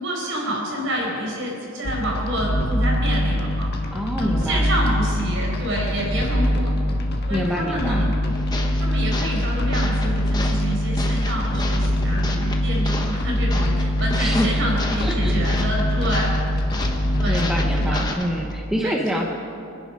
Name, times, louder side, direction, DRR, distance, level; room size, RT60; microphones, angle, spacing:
voice 1, 0.0-3.7 4.2-6.7 7.3-8.1 8.8-16.4 17.2-17.4 17.8-18.0 18.8-19.2, right 1 dB, 65° right, -2 dB, 4.8 m, -28 dB
sound 1, 1.8-18.1, equal, 50° left, 1.5 m, -23 dB
voice 2, 3.9-4.6 7.3-8.1 14.1-14.6 15.0-15.4 17.3-19.2, equal, 5° right, 0 dB, 0.9 m, -26 dB
sound 2, 8.3-18.5, left 2 dB, 20° left, 1.1 m, -33 dB
26.5 x 10.5 x 5.2 m, 2.6 s
head